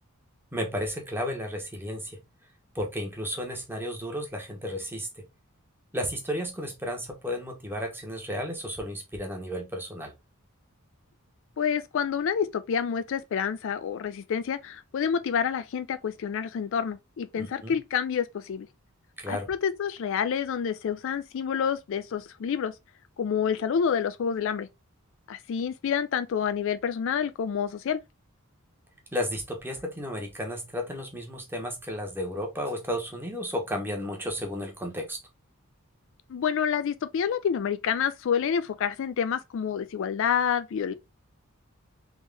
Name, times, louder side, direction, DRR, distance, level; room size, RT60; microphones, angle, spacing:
voice 1, 0.5-2.2 2.7-5.2 5.9-10.1 17.4-17.8 19.2-19.5 29.1-35.2, equal, 10° right, 1.0 m, -33 dB
voice 2, 11.6-18.7 19.3-22.7 23.2-24.7 25.3-28.0 36.3-40.9, left 7 dB, 65° left, 0.4 m, -28 dB
3.6 x 3.1 x 3.2 m
head